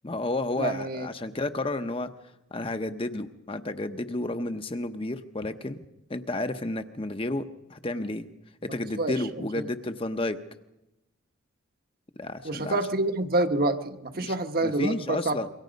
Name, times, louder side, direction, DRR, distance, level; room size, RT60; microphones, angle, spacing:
voice 1, 0.0-2.1 2.5-5.8 6.1-7.4 7.7-8.3 8.6-10.4 12.2-12.8 14.2-14.3 14.6-15.5, left 2 dB, 25° left, 8 dB, 0.9 m, -31 dB
voice 2, 0.6-1.1 9.0-9.6 12.4-15.4, right 2 dB, 45° right, 6 dB, 1.3 m, -27 dB
27.0 x 23.5 x 5.3 m, 0.94 s
head